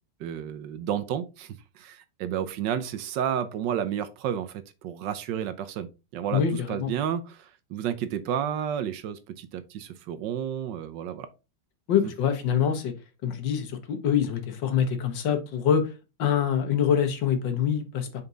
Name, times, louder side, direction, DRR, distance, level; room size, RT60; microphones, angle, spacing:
voice 1, 0.2-4.5 4.8-6.4 6.7-11.3, right 9 dB, 70° right, 1.3 m, -31 dB
voice 2, 6.3-6.9 11.9-12.9 13.2-15.9 16.2-18.2, left 8 dB, 70° left, 1.7 m, -25 dB
5.5 x 4.5 x 3.8 m
omnidirectional pair, 2.1 m